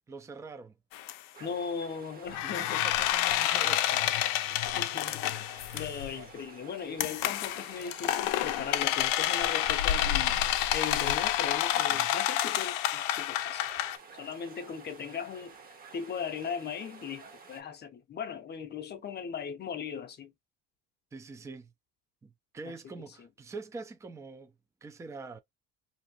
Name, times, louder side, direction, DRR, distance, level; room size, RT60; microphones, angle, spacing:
voice 1, 0.1-0.7 2.4-4.2 11.9-12.1 21.1-21.7 22.2-24.5 24.8-25.4, right 3 dB, 10° right, 0.3 m, -44 dB
sound 1, 0.9-1.1 2.3-6.1 7.0-14.0, left 12 dB, 85° left, 0.5 m, -29 dB
sound 2, 1.3-17.6, right 4 dB, 30° right, 0.7 m, -51 dB
voice 2, 1.4-2.9 4.8-5.3 5.7-13.8 14.1-15.6 15.9-20.3 23.2-23.3, left 6 dB, 30° left, 0.7 m, -38 dB
2.7 x 2.5 x 2.8 m
cardioid pair, 125°, 32 cm